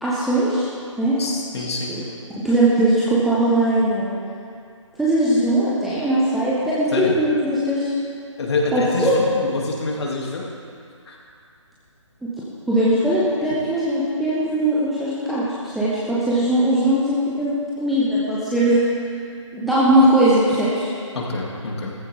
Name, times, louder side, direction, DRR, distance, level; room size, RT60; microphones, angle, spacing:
voice 1, 0.0-0.7 1.0-1.2 1.6-2.0 2.4-4.1 5.0-7.9 8.7-9.2 12.2-12.3 12.7-15.4 15.7-17.5 17.8-18.8 19.5-20.9, right 1 dB, ahead, -11 dB, 0.3 m, -19 dB
voice 2, 1.2-1.9 6.9-7.1 8.4-10.4 11.1-11.2 21.1-21.9, left 3 dB, 55° left, -2 dB, 3.0 m, -26 dB
14.5 x 14.5 x 3.8 m, 2.3 s
figure-of-eight pair, 155°, 16 cm